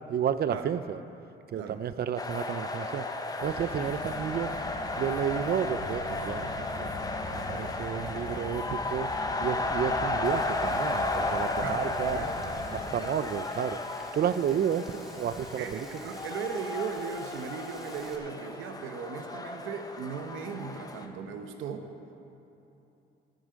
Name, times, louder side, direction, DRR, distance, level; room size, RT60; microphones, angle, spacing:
voice 1, 0.1-1.0 1.5-3.1 3.4-4.5 5.0-6.5 6.8-6.9 7.3-9.1 9.4-12.2 12.7-13.8 14.1-15.9, right 8 dB, 50° right, 14 dB, 0.5 m, -31 dB
sound 1, 2.2-21.1, left 2 dB, 20° left, 1.0 m, -34 dB
sound 2, 3.4-12.8, left 2 dB, 85° left, 2.2 m, -42 dB
Frying (food), 10.2-18.2, equal, ahead, 1.9 m, -53 dB
voice 2, 11.6-12.3 12.9-13.1 15.6-21.9, right 6 dB, 85° right, 6 dB, 1.0 m, -37 dB
14.5 x 9.4 x 5.1 m, 2.9 s
cardioid pair, 90°, 20 cm